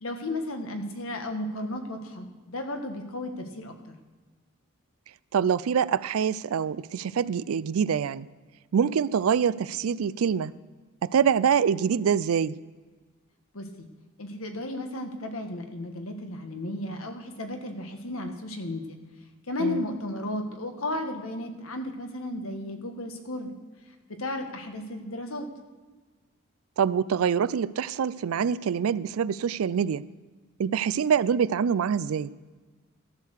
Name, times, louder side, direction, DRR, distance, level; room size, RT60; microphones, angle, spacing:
voice 1, 0.0-3.7 13.5-13.9 14.2-19.0 19.5-23.5 24.2-25.5, left 1 dB, 80° left, 1.5 m, -34 dB
voice 2, 5.3-8.3 8.7-10.5 11.0-12.6 19.6-19.9 26.8-30.0 30.6-32.3, right 7 dB, 90° right, 0.4 m, -25 dB
14.0 x 6.6 x 6.5 m
head